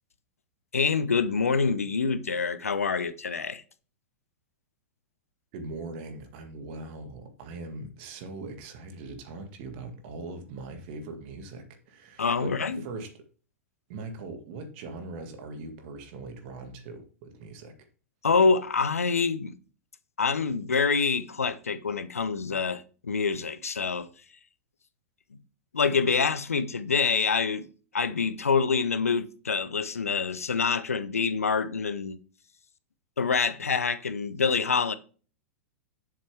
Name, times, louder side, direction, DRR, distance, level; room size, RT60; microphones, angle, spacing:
voice 1, 0.7-3.6 12.2-12.8 18.2-19.5 20.2-24.1 25.7-27.7 27.9-32.2 33.2-34.9, left 5 dB, 80° left, 0.7 m, -26 dB
voice 2, 5.5-13.1 13.9-17.8, right 3 dB, 50° right, 2.0 m, -41 dB
7.4 x 7.2 x 3.4 m
figure-of-eight pair, 100°, 8 cm